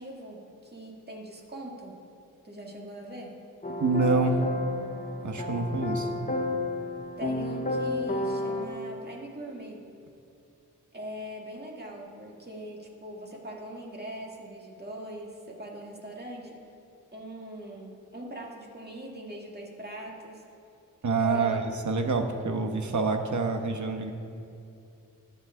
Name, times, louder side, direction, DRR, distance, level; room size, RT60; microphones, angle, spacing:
voice 1, 0.0-2.0 2.4-3.4 7.2-9.9 10.9-16.6 17.1-20.4 21.2-21.6, right 1 dB, 30° right, -1 dB, 2.0 m, -41 dB
sound 1, 3.6-8.7, left 2 dB, 25° left, 0.9 m, -31 dB
voice 2, 3.8-4.4 5.2-6.1 21.0-24.1, right 3 dB, 60° right, 5 dB, 1.1 m, -26 dB
21.0 x 7.4 x 3.8 m, 2.6 s
wide cardioid pair, 105°, 33 cm